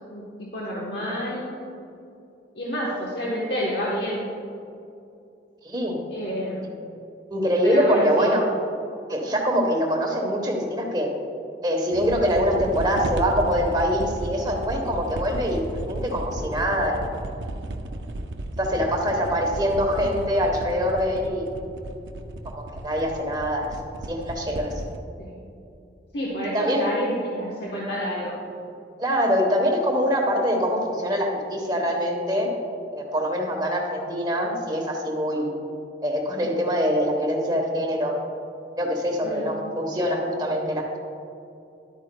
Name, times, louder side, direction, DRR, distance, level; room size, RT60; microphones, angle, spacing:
voice 1, 0.1-1.5 2.5-4.4 6.1-6.7 7.6-8.3 25.2-25.4 26.1-28.4 39.2-39.5, equal, 75° left, -5 dB, 1.1 m, -29 dB
voice 2, 5.6-6.0 7.3-8.4 9.1-11.1 11.6-17.0 18.6-21.5 22.4-23.7 24.1-24.7 26.5-26.8 29.0-32.5 32.9-35.5 36.0-38.1 38.8-41.0, equal, 25° right, 1 dB, 1.0 m, -24 dB
sound 1, 11.9-25.0, right 1 dB, 80° right, 0.5 m, -34 dB
11.5 x 8.2 x 2.2 m, 2.6 s
head